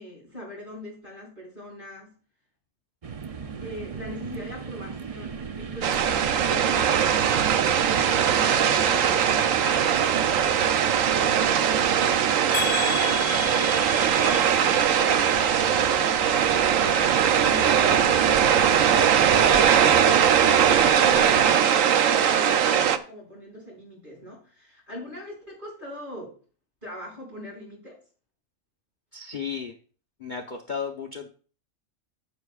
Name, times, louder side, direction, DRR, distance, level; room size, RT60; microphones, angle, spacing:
voice 1, 0.0-2.1 3.6-7.0 7.3-7.8 8.1-10.6 11.3-12.3 12.6-13.5 14.5-16.0 16.4-20.5 21.0-22.0 22.2-26.4 26.8-28.0, left 1 dB, 35° right, -3 dB, 5.6 m, -42 dB
sound 1, 3.0-21.6, right 6 dB, 55° right, 0.4 m, -35 dB
sound 2, 5.8-23.0, right 8 dB, 75° right, 1.1 m, -21 dB
sound 3, 12.5-16.5 16.8-17.4 17.9-18.0 18.4-18.5, left 12 dB, 85° left, 1.0 m, -35 dB
voice 2, 29.1-29.7 30.2-31.3, left 6 dB, 40° left, 1 dB, 0.8 m, -34 dB
15.0 x 7.0 x 2.4 m, 0.41 s
omnidirectional pair, 1.4 m